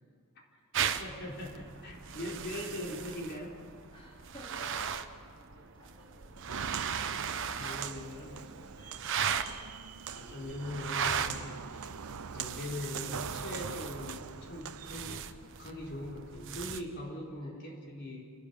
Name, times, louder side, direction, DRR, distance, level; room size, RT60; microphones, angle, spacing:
sound 1, 0.7-16.8, right 7 dB, 60° right, 1.1 m, -38 dB
voice 1, 0.8-3.6 7.5-8.4 10.1-11.6 12.3-15.3 15.6-18.2, left 1 dB, 50° left, -2 dB, 4.3 m, -41 dB
voice 2, 3.9-6.5 6.9-9.1 11.8-12.4 16.9-17.7, equal, 25° left, -5 dB, 4.1 m, -56 dB
Walk footsteps, 6.4-15.2, right 6 dB, 80° right, 0.7 m, -43 dB
29.0 x 17.5 x 7.1 m, 2.1 s
head